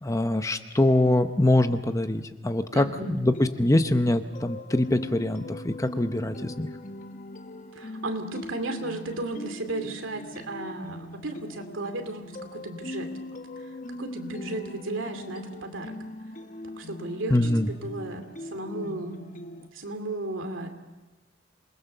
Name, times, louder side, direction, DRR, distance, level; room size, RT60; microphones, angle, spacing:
voice 1, 0.0-6.7 17.3-17.7, left 1 dB, 15° left, 9 dB, 0.8 m, -24 dB
voice 2, 2.7-3.1 7.7-13.1 13.6-13.7 13.9-16.0 16.6-19.2 19.7-20.7, right 2 dB, 75° right, 6 dB, 2.6 m, -34 dB
sound 1, 3.3-19.7, left 1 dB, 40° left, 1.1 m, -41 dB
27.0 x 20.5 x 6.7 m, 1.2 s
head